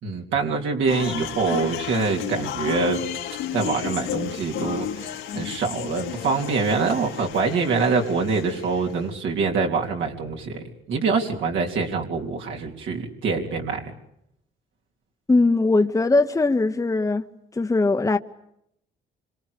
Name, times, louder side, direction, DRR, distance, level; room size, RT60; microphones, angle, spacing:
voice 1, 0.0-3.0 3.5-13.9, right 4 dB, 75° right, 3.7 m, -25 dB
sound 1, 0.9-9.0, left 10 dB, 85° left, 2.6 m, -33 dB
voice 2, 15.3-17.2 17.6-18.2, left 3 dB, 15° left, 1.0 m, -20 dB
27.0 x 26.0 x 6.8 m
cardioid pair, 90°, 20 cm